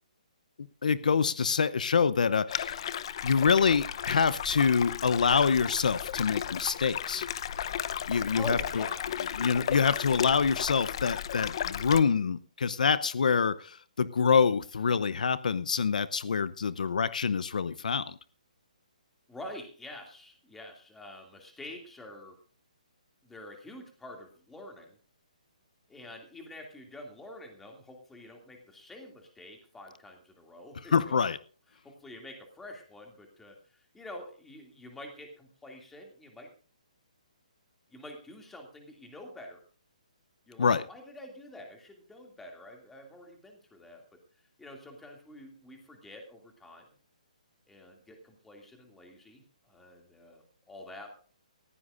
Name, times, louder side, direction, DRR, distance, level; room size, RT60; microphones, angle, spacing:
voice 1, 0.8-2.9 3.2-7.2 8.1-8.6 9.3-18.2 30.9-31.4 40.6-40.8, left 6 dB, 70° left, 16 dB, 0.8 m, -26 dB
sound 1, 2.5-12.0, left 9 dB, 40° left, 0.8 m, -35 dB
voice 2, 8.3-9.2 19.3-22.4 23.2-25.0 25.9-31.2 31.7-36.5 37.9-39.6 40.5-46.9 47.7-51.2, left 1 dB, 5° left, 2 dB, 2.6 m, -47 dB
19.5 x 15.5 x 2.6 m, 0.39 s
hypercardioid pair, 165°, 4 cm